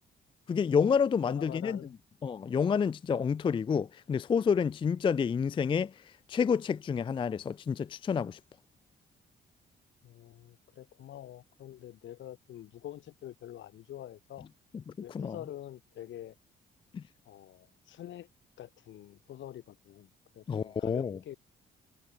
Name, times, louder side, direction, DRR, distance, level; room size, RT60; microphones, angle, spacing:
voice 1, 0.5-1.8 2.2-5.9 6.3-8.4 15.1-15.4 16.9-17.0 20.5-21.2, left 6 dB, 25° left, 0.3 m, -29 dB
voice 2, 1.2-1.9 10.0-14.5 15.0-16.3 17.2-18.3 18.6-21.4, left 12 dB, 70° left, 1.3 m, -46 dB
cardioid pair, 90°, 20 cm